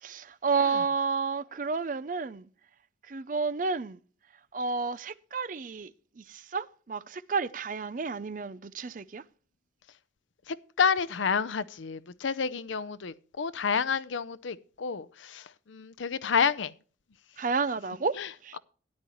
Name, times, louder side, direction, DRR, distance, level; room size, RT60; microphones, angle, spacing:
voice 1, 0.0-2.5 3.1-4.0 4.5-5.9 6.2-9.2 17.4-18.2 18.4-18.6, right 4 dB, 45° right, 0.5 m, -31 dB
voice 2, 10.5-16.7 18.2-18.3, left 6 dB, 90° left, 0.6 m, -29 dB
13.0 x 10.0 x 3.1 m
head